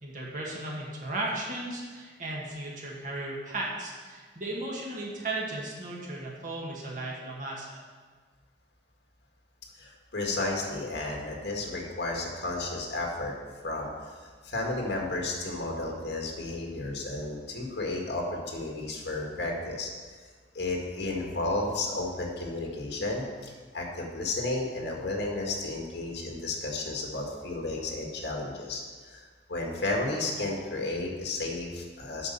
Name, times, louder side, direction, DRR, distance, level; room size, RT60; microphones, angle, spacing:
voice 1, 0.0-7.8, right 2 dB, 45° right, -3 dB, 1.9 m, -35 dB
voice 2, 9.8-13.3 13.6-14.2 14.4-19.9 20.5-32.3, left 2 dB, 70° left, 0 dB, 1.8 m, -33 dB
8.4 x 5.2 x 6.9 m, 1.5 s
head